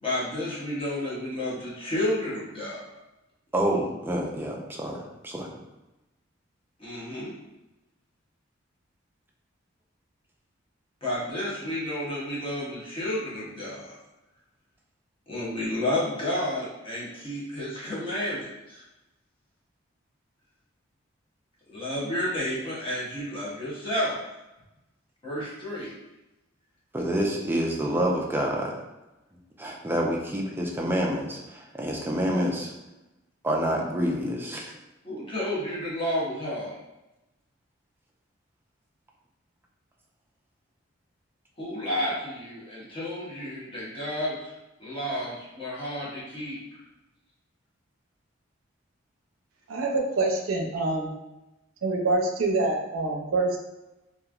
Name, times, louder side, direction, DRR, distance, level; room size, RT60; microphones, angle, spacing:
voice 1, 0.0-2.8 6.8-7.3 11.0-13.9 15.3-18.8 21.7-24.2 25.2-25.9 35.0-36.8 41.6-44.4 44.8-46.6, left 1 dB, 25° left, -7 dB, 0.8 m, -31 dB
voice 2, 3.5-5.5 26.9-28.8 29.6-32.7 33.4-34.7, equal, 10° right, -1 dB, 0.4 m, -27 dB
voice 3, 49.7-51.1 51.8-53.6, right 2 dB, 85° right, 1 dB, 0.5 m, -26 dB
2.9 x 2.4 x 2.3 m, 0.99 s
head